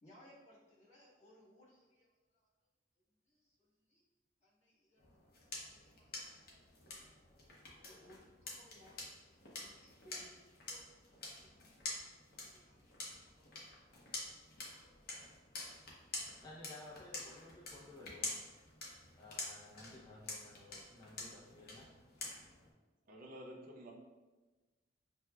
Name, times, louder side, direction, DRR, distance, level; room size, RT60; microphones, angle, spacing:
voice 1, 0.0-2.5 3.1-4.0 4.4-6.3 6.8-7.0 7.5-11.8 12.4-13.5 14.2-14.4, equal, 40° left, -8 dB, 1.3 m, -65 dB
sound 1, 5.0-22.7, left 2 dB, 55° left, 0.8 m, -48 dB
voice 2, 16.4-18.4 19.2-21.9, left 2 dB, 20° left, -6 dB, 0.5 m, -55 dB
voice 3, 23.1-23.9, equal, 50° right, -2 dB, 0.6 m, -50 dB
5.9 x 2.1 x 2.2 m, 1.2 s
head